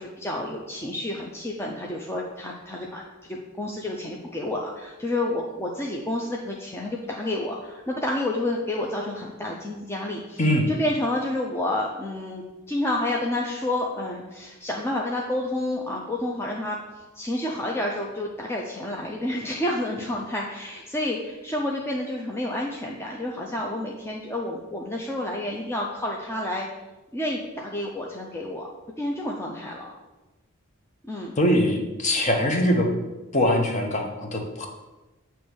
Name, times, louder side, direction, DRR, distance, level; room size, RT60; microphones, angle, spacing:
voice 1, 0.0-3.0 3.3-10.4 10.7-26.7 27.1-28.7 29.0-29.9 31.0-31.3, left 1 dB, 10° left, -2 dB, 0.5 m, -29 dB
voice 2, 10.4-10.7 31.4-32.9 33.3-34.7, equal, 35° left, 2 dB, 1.0 m, -22 dB
8.4 x 3.1 x 6.2 m, 1.1 s
head